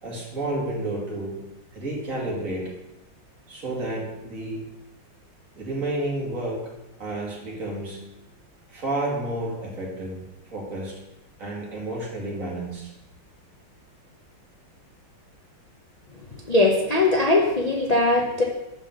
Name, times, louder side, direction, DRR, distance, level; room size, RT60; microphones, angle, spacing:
voice 1, 0.0-1.4 1.7-2.7 3.5-4.7 5.5-6.7 7.0-8.2 8.7-10.2 10.5-11.0 11.4-12.9, right 1 dB, 40° right, -3 dB, 2.6 m, -31 dB
voice 2, 16.5-18.4, left 2 dB, 60° left, -1 dB, 0.4 m, -20 dB
7.1 x 5.7 x 6.5 m, 0.95 s
omnidirectional pair, 2.2 m